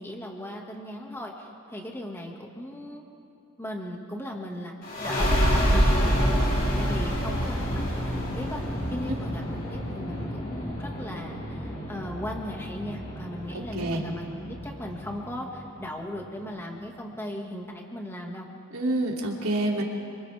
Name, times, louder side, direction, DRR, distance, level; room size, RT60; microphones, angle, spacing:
voice 1, 0.0-3.0 3.6-4.7 5.0-6.4 6.8-8.6 8.9-18.5, left 1 dB, 10° left, 0 dB, 2.0 m, -38 dB
sound 1, 4.8-16.1, equal, 45° left, 6.0 m, -28 dB
voice 2, 13.5-14.0 18.7-19.8, right 1 dB, 85° right, -1 dB, 3.1 m, -27 dB
28.0 x 26.0 x 3.6 m, 2.6 s
head